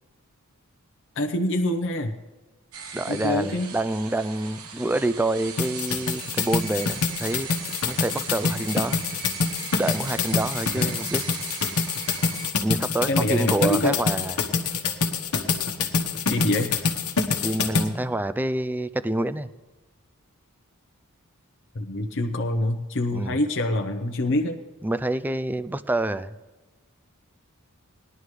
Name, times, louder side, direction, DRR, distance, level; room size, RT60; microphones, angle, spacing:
voice 1, 1.2-2.1 3.1-3.7 10.8-10.9 13.1-14.0 16.3-16.7 21.7-24.6, left 1 dB, 55° left, 4 dB, 0.8 m, -25 dB
sound 1, 2.7-12.5, right 6 dB, 75° right, 1.2 m, -38 dB
voice 2, 2.9-7.5 7.9-9.0 9.8-11.2 12.6-14.3 17.4-19.5 23.1-23.4 24.8-26.3, right 1 dB, 10° right, 14 dB, 0.3 m, -27 dB
sound 2, 5.6-17.9, left 4 dB, 85° left, 1.3 m, -25 dB
19.5 x 11.0 x 3.2 m, 1.2 s
head